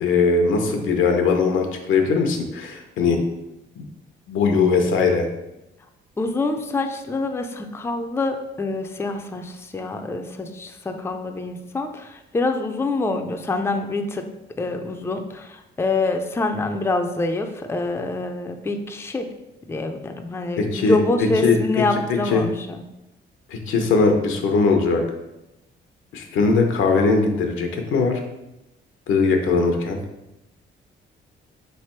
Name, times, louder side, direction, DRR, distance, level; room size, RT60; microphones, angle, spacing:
voice 1, 0.0-3.2 3.8-3.9 4.3-5.3 20.6-21.0 21.4-21.6 22.3-22.4 23.5-25.0 26.1-28.2 29.1-30.0, left 4 dB, 80° left, 4 dB, 0.8 m, -20 dB
voice 2, 6.2-14.3 14.6-19.3 19.7-22.8, left 2 dB, 10° left, 5 dB, 0.4 m, -26 dB
3.6 x 3.3 x 4.4 m, 0.94 s
cardioid pair, 90°, 20 cm